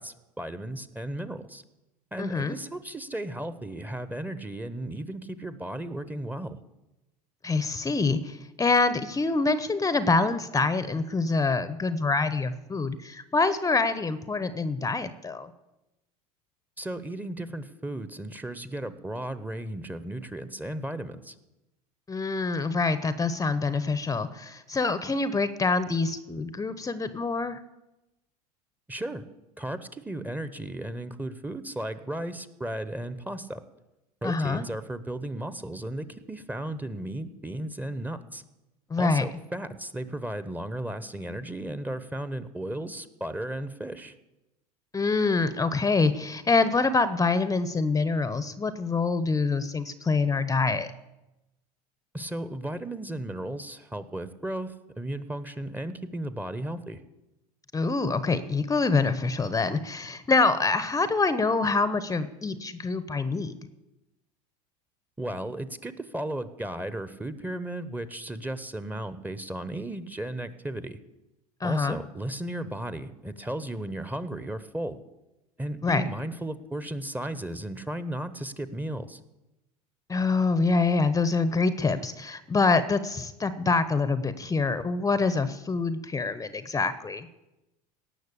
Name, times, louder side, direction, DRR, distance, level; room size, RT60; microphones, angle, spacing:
voice 1, 0.0-1.6 2.1-6.6 16.8-21.3 28.9-29.3 29.6-33.6 34.2-38.4 39.0-44.1 52.1-57.0 65.2-71.0 71.6-75.0 75.6-79.2, right 1 dB, 10° right, 13 dB, 0.9 m, -35 dB
voice 2, 2.2-2.6 7.4-15.5 22.1-27.6 34.2-34.6 38.9-39.2 44.9-50.9 57.7-63.6 71.6-72.0 75.8-76.0 80.1-87.3, left 3 dB, 15° left, 14 dB, 0.8 m, -25 dB
17.5 x 6.3 x 8.4 m, 0.97 s
hypercardioid pair, 85°, 20 cm